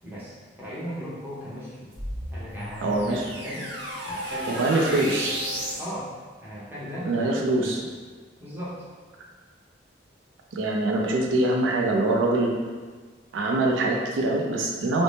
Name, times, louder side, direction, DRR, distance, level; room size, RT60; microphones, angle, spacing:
voice 1, 0.0-1.9 2.3-3.7 4.1-5.2 5.8-6.1 6.4-7.7 8.4-8.8, equal, 10° right, -9 dB, 0.7 m, -37 dB
sound 1, 1.9-5.9, equal, 70° right, 0.8 m, -33 dB
voice 2, 2.8-3.2 4.5-5.3 7.0-7.8 10.5-12.5 13.3-15.0, right 2 dB, 85° right, 0 dB, 0.4 m, -24 dB
2.6 x 2.0 x 3.2 m, 1.4 s
head